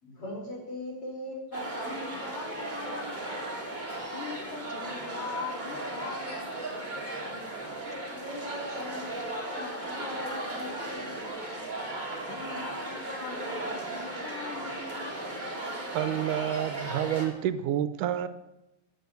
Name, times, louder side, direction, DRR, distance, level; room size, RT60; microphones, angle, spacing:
voice 1, 0.0-3.1 7.4-7.5 8.0-11.2 11.7-11.8, left 1 dB, 45° left, 5.8 m, -40 dB
sound 1, 1.5-17.3, right 1 dB, 15° right, 2.6 m, -36 dB
voice 2, 4.1-6.8 12.3-15.2, left 6 dB, 75° left, 3.0 m, -41 dB
voice 3, 15.9-18.3, right 11 dB, 90° right, 2.3 m, -29 dB
15.0 x 9.8 x 8.0 m
omnidirectional pair, 3.6 m